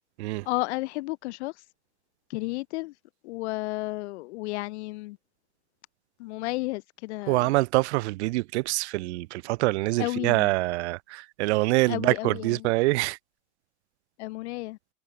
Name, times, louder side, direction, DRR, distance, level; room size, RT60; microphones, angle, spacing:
voice 1, 0.5-1.5 2.3-2.9 3.2-5.2 6.2-7.5 10.0-10.5 11.9-12.6 14.2-14.8, left 21 dB, 55° left, 0.6 m, -32 dB
voice 2, 7.3-13.2, right 21 dB, 55° right, 0.6 m, -25 dB
hypercardioid pair, 105°, 41 cm